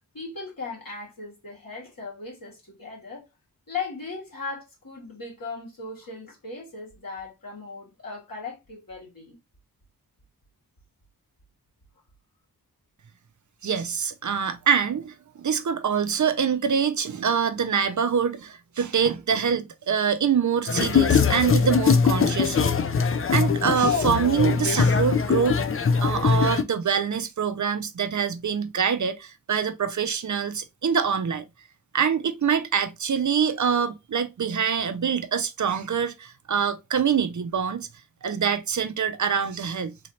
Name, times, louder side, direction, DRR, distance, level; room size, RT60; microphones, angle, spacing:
voice 1, 0.1-3.3 3.7-9.4, left 4 dB, 65° left, 2.4 m, -37 dB
voice 2, 13.6-22.9 23.3-25.6 26.0-31.4 31.9-37.9 38.2-39.9, right 7 dB, 50° right, 0.5 m, -25 dB
sound 1, 20.7-26.6, left 5 dB, 35° left, 0.5 m, -21 dB
3.8 x 2.8 x 3.1 m
cardioid pair, 40°, 37 cm